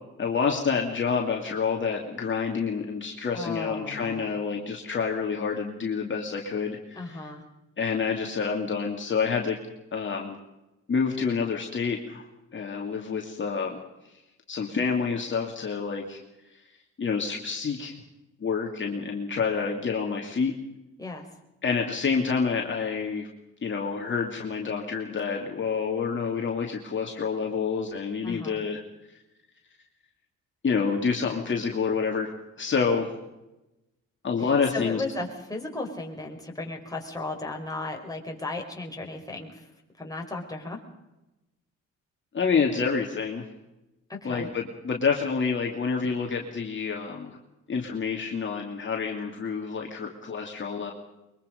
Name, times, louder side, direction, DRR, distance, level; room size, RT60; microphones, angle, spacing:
voice 1, 0.2-7.3 7.8-9.6 9.9-10.4 10.9-12.2 12.5-13.8 14.1-14.2 14.5-16.2 16.5-16.6 17.0-17.9 18.4-20.5 21.6-23.3 23.6-28.8 30.6-32.3 32.6-33.1 34.2-35.0 42.3-43.5 44.2-47.4 47.7-50.9, left 5 dB, 40° left, 1 dB, 2.8 m, -28 dB
voice 2, 3.3-4.3 6.9-7.4 21.0-21.3 28.2-28.6 34.4-39.6 40.0-40.8 44.1-44.5, left 2 dB, 10° left, 1 dB, 5.1 m, -35 dB
23.0 x 23.0 x 5.3 m, 0.97 s
cardioid pair, 90°, 30 cm